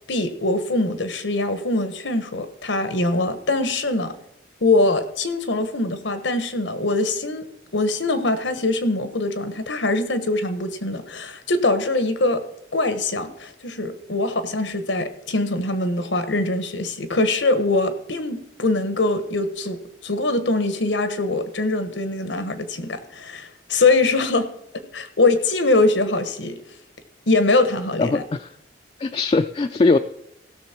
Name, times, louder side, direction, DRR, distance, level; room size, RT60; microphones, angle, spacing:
voice 1, 0.1-4.1 4.6-7.4 7.7-12.4 12.7-24.5 24.9-26.6 27.3-28.2, left 2 dB, 90° left, 10 dB, 1.3 m, -22 dB
voice 2, 28.0-28.5 29.0-30.0, left 3 dB, 30° left, 6 dB, 0.3 m, -20 dB
16.5 x 6.7 x 4.4 m, 0.83 s
head